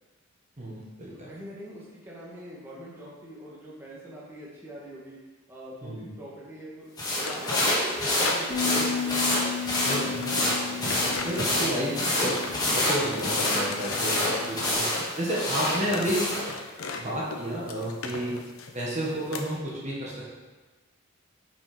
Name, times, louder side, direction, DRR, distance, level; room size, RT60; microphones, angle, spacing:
voice 1, 0.6-1.3 5.8-6.1 9.8-12.4 12.7-14.9 15.2-16.3 17.0-18.4 18.7-20.3, right 1 dB, 35° right, -5 dB, 1.5 m, -31 dB
voice 2, 1.1-5.2 5.5-6.9 7.2-9.2, equal, 10° right, -6 dB, 1.5 m, -43 dB
sound 1, 7.0-16.5, left 1 dB, 20° left, 1.7 m, -27 dB
sound 2, 7.1-17.0 17.3-19.6, left 4 dB, 85° left, 0.8 m, -39 dB
Bass guitar, 8.5-14.7, left 7 dB, 40° left, 1.1 m, -35 dB
6.5 x 6.1 x 5.0 m, 1.3 s
head